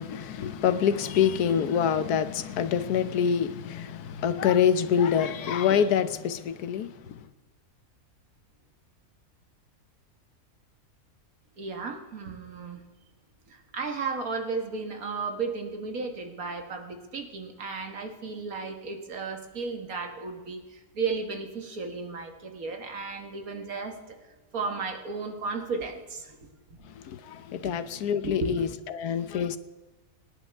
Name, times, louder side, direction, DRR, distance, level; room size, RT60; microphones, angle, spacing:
voice 1, 0.0-7.3 26.8-29.6, left 8 dB, 90° left, 1.3 m, -26 dB
voice 2, 11.6-12.8 13.7-20.6 21.0-24.0 24.5-26.3 27.6-27.7 28.2-28.7, right 4 dB, 70° right, 1.9 m, -34 dB
25.5 x 11.0 x 3.5 m
omnidirectional pair, 1.6 m